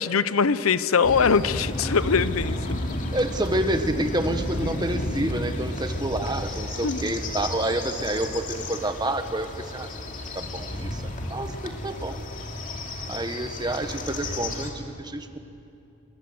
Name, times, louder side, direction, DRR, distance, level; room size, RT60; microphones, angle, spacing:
voice 1, 0.0-2.6 6.8-7.1, left 5 dB, 85° left, 15 dB, 0.7 m, -22 dB
sound 1, 1.0-14.7, left 1 dB, 40° left, 2.5 m, -32 dB
voice 2, 3.1-9.9 10.3-12.2 13.1-15.4, right 1 dB, 20° right, 8 dB, 1.3 m, -29 dB
28.5 x 22.0 x 7.9 m, 2.6 s
head